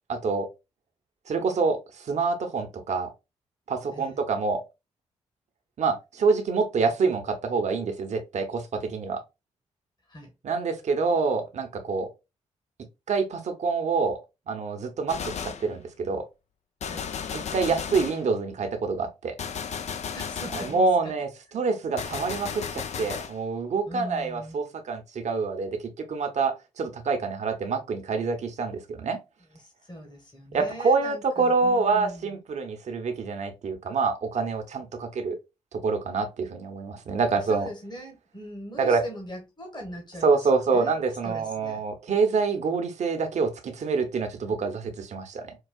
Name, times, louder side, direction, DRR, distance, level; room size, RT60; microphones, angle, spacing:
voice 1, 0.1-0.5 1.3-3.1 3.7-4.6 5.8-9.2 10.4-12.1 13.1-14.2 14.5-16.2 17.3-19.4 20.6-21.3 21.5-25.8 26.1-29.2 30.5-35.4 35.7-37.7 38.8-39.0 40.2-45.6, right 4 dB, 60° right, 0.8 m, -26 dB
Gunshot gunfire, 15.1-15.7 16.8-18.3 19.4-20.8 22.0-23.4, left 7 dB, 55° left, 0.5 m, -34 dB
voice 2, 20.1-21.1 21.5-21.6 23.8-24.6 29.5-32.3 37.4-41.9, equal, 30° left, 1.5 m, -41 dB
4.5 x 2.3 x 2.3 m
hypercardioid pair, 40°, 14 cm